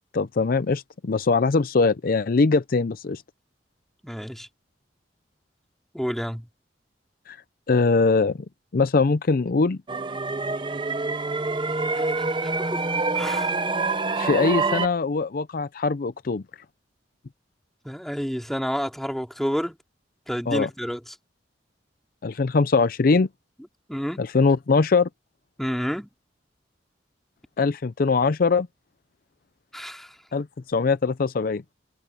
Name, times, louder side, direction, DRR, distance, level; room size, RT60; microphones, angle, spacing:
voice 1, 0.1-3.2 7.3-7.4 7.7-8.4 8.7-9.8 14.2-16.4 20.5-20.7 22.2-23.3 24.2-25.1 27.6-28.7 30.3-31.6, left 4 dB, 50° left, 0.5 m, -22 dB
voice 2, 4.0-4.5 5.9-6.5 11.9-12.8 13.1-13.5 17.8-19.8 20.3-21.0 23.9-24.2 25.6-26.1 29.7-30.1, equal, ahead, 3.1 m, -30 dB
sound 1, 9.9-14.9, right 3 dB, 25° right, 0.8 m, -26 dB
head